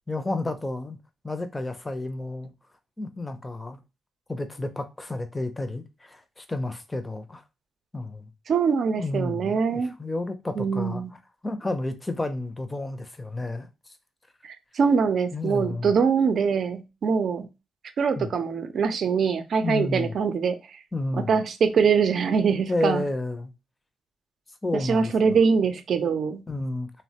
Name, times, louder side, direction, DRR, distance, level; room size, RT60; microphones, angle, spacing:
voice 1, 0.1-1.0 1.2-2.5 3.0-3.8 4.3-7.4 7.9-8.3 9.0-11.0 11.4-13.7 15.3-15.9 18.2-18.3 19.6-20.2 20.9-21.4 22.7-23.5 24.6-25.4 26.5-26.9, left 2 dB, 20° left, 0.5 m, -31 dB
voice 2, 8.5-9.9 10.6-11.1 14.4-17.5 18.0-20.6 21.2-23.0 24.7-26.4, right 6 dB, 60° right, 0.5 m, -23 dB
2.9 x 2.1 x 2.8 m
cardioid pair, 75°, 0 cm